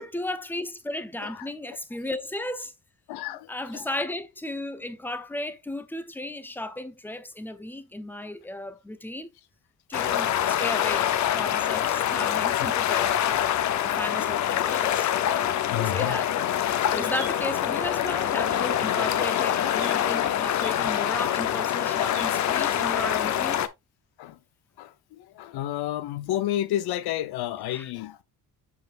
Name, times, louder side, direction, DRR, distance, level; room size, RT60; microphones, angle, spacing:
voice 1, 0.0-2.7 3.5-9.3 9.9-13.5 13.8-16.3 16.9-23.7 27.7-27.9, left 1 dB, 5° left, 0.6 m, -35 dB
voice 2, 3.1-3.9 10.0-10.1 11.7-11.8 12.6-12.7 15.7-16.2 24.2-24.4 24.8-28.2, left 12 dB, 80° left, 0.8 m, -31 dB
sound 1, 9.9-23.7, left 11 dB, 50° left, 0.6 m, -25 dB
sound 2, 15.8-16.2 16.6-22.8, right 5 dB, 90° right, 2.3 m, -48 dB
7.4 x 5.8 x 2.4 m
cardioid pair, 155°, 37 cm